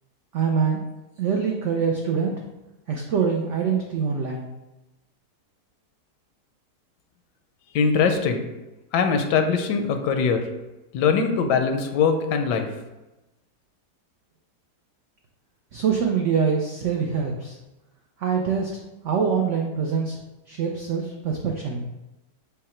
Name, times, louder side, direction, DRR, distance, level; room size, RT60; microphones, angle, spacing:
voice 1, 0.3-0.8 1.2-2.4 2.9-4.5 15.7-17.5 18.2-18.7 19.0-20.2 20.5-21.8, right 6 dB, 80° right, 1 dB, 0.6 m, -24 dB
voice 2, 7.7-8.5 8.9-10.4 10.9-12.7, left 5 dB, 80° left, 6 dB, 1.2 m, -22 dB
5.6 x 2.2 x 4.3 m, 1.0 s
omnidirectional pair, 1.8 m